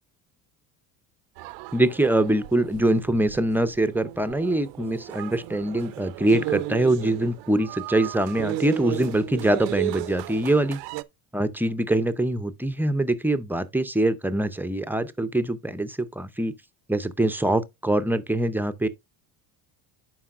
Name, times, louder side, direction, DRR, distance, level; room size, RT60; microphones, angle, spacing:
sound 1, 1.4-11.0, right 17 dB, 80° right, 0.6 m, -34 dB
voice 1, 1.7-10.8 11.3-16.5 16.9-18.9, right 1 dB, 5° right, 0.5 m, -24 dB
11.0 x 4.7 x 2.5 m
supercardioid pair, 100°, 42 cm